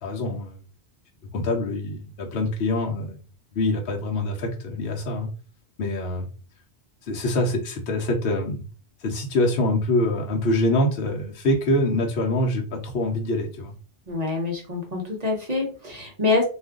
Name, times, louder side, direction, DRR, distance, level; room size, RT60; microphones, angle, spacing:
voice 1, 0.0-0.6 1.3-3.2 3.5-5.3 5.8-6.3 7.0-8.6 9.0-13.7, left 1 dB, 65° left, 0 dB, 0.8 m, -25 dB
voice 2, 14.1-16.4, left 3 dB, 40° right, 1 dB, 0.8 m, -25 dB
2.4 x 2.3 x 3.5 m, 0.37 s
omnidirectional pair, 1.1 m